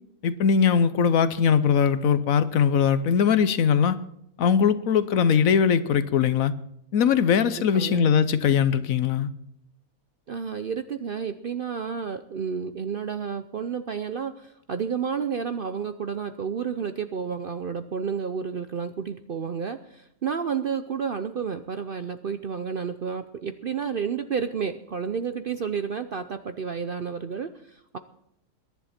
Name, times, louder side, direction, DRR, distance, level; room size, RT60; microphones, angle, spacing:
voice 1, 0.2-4.0 4.4-6.5 6.9-9.3, left 7 dB, 70° left, 14 dB, 1.2 m, -21 dB
voice 2, 7.7-8.1 10.3-28.0, right 6 dB, 55° right, 10 dB, 0.6 m, -31 dB
22.0 x 10.5 x 4.3 m, 0.75 s
omnidirectional pair, 1.5 m